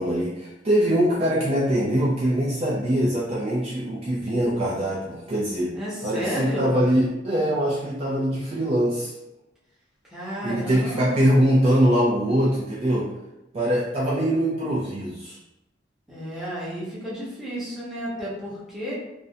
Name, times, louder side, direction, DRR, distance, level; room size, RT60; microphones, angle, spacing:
voice 1, 0.0-5.7 6.0-9.1 10.4-13.1 13.5-15.4, equal, 30° right, -7 dB, 0.4 m, -23 dB
voice 2, 5.7-6.7 10.1-11.3 16.1-18.9, equal, ahead, -9 dB, 0.8 m, -32 dB
2.4 x 2.1 x 2.6 m, 0.94 s
head